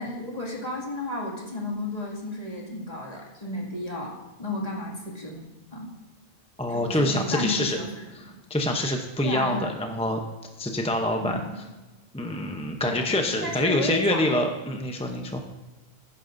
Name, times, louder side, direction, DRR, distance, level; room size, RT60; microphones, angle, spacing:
voice 1, 0.0-5.4 5.7-5.9 6.7-8.0 9.2-9.7 11.2-11.5 12.8-14.2, left 1 dB, 35° left, -3 dB, 2.4 m, -33 dB
voice 2, 6.6-7.8 8.5-10.2 10.6-11.4 12.1-15.4, left 1 dB, 5° left, 3 dB, 0.6 m, -26 dB
15.5 x 11.0 x 2.6 m, 1.2 s
omnidirectional pair, 1.2 m